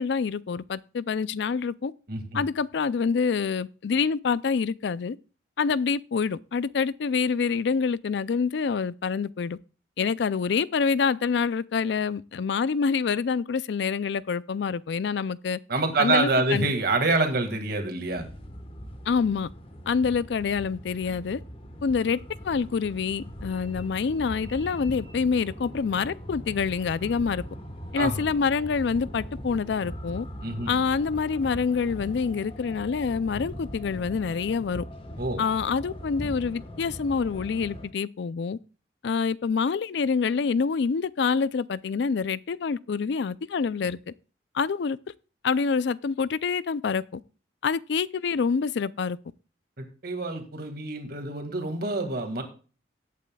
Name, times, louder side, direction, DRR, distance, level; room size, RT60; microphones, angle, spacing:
voice 1, 0.0-1.9 2.3-5.2 5.6-9.6 10.0-15.6 16.0-16.7 19.1-19.5 19.9-21.4 21.8-22.2 22.4-27.4 27.9-30.3 30.7-34.8 35.4-38.6 39.0-44.1 44.5-45.0 45.4-47.2 47.6-49.2, left 5 dB, 65° left, 0.4 m, -26 dB
voice 2, 2.1-2.4 15.7-18.3 28.0-28.2 30.4-30.7 35.2-35.4 49.8-52.4, right 2 dB, 55° right, 2.0 m, -27 dB
sound 1, 18.1-37.9, equal, 30° left, 1.3 m, -40 dB
18.0 x 8.4 x 2.3 m
head